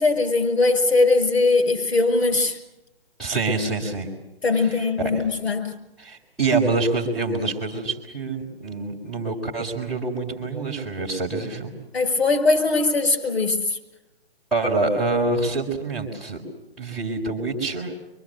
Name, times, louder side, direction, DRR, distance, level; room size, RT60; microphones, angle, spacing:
voice 1, 0.0-2.6 4.4-5.7 11.9-13.8, left 3 dB, 70° left, 6 dB, 6.2 m, -20 dB
voice 2, 3.2-4.1 4.6-5.2 6.0-11.7 14.5-16.4 16.8-17.9, right 3 dB, ahead, -7 dB, 3.8 m, -26 dB
26.0 x 24.0 x 8.0 m, 0.95 s
hypercardioid pair, 155°, 31 cm